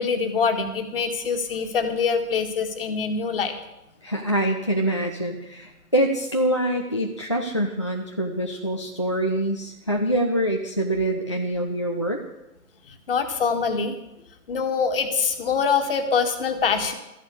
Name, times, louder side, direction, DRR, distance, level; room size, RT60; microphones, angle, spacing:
voice 1, 0.0-3.5 12.9-14.0 14.5-16.9, left 5 dB, 35° left, 7 dB, 1.8 m, -24 dB
voice 2, 4.0-12.2, right 1 dB, 20° left, 2 dB, 0.5 m, -25 dB
13.5 x 11.0 x 8.1 m, 0.91 s
figure-of-eight pair, 135°, 47 cm